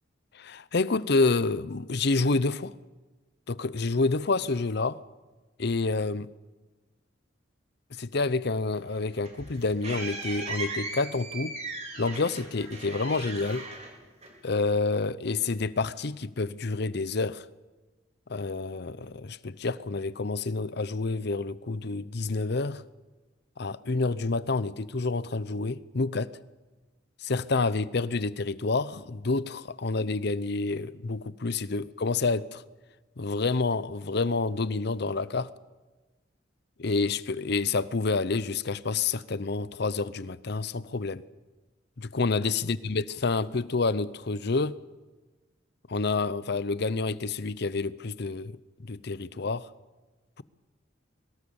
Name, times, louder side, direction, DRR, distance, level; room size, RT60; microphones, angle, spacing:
voice 1, 0.3-2.7 3.5-5.0 5.6-6.3 7.9-11.6 12.0-13.7 14.4-17.4 18.3-22.8 23.6-26.3 27.2-32.6 33.2-35.5 36.8-41.2 42.0-44.8 45.9-49.7, left 3 dB, 60° left, 0.8 m, -28 dB
sound 1, 8.9-14.7, right 2 dB, 35° right, 4.5 m, -38 dB
23.0 x 19.5 x 7.2 m
head